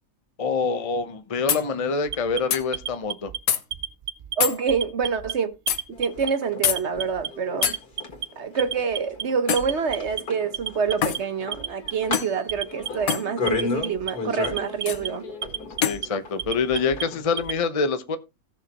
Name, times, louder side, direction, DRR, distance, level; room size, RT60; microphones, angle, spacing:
voice 1, 0.4-3.3 15.8-18.2, left 4 dB, 30° left, 0.7 m, -26 dB
sound 1, 1.0-1.1 1.5-1.7 2.5-2.6 3.5-3.6 4.4-4.6 5.7-5.8 6.6-6.8 7.6-7.8 9.5-9.7 11.0-11.2 12.1-12.4 13.1-13.3 14.9-15.0 15.8-16.0, left 9 dB, 70° left, 1.3 m, -24 dB
Alarm, 2.1-3.4 3.7-4.3 4.7-5.3 5.7-6.3 6.6-7.3 7.6-8.2 8.6-9.2 9.6-10.2 10.5-11.2 11.5-12.2 12.5-13.1 13.5-14.1 14.4-15.1 15.4-16.1 16.4-17.6, right 9 dB, 70° right, 0.5 m, -32 dB
voice 2, 4.4-5.5 6.0-7.8 8.4-15.2, right 6 dB, 50° right, 1.1 m, -26 dB
sound 2, 5.9-17.5, left 4 dB, 90° left, 2.5 m, -35 dB
16.0 x 6.6 x 2.9 m
omnidirectional pair, 1.6 m